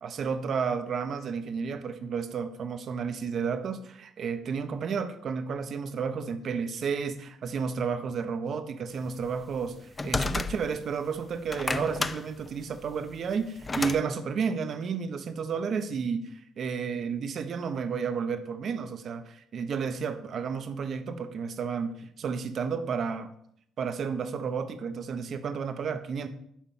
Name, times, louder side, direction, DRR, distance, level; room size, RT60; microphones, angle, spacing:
voice 1, 0.0-23.3 23.8-26.3, right 6 dB, 55° right, 9 dB, 1.1 m, -32 dB
sound 1, 9.2-10.9 11.3-14.0, left 3 dB, 25° left, 0.6 m, -31 dB
12.0 x 4.5 x 7.2 m, 0.70 s
supercardioid pair, 85°, 0 cm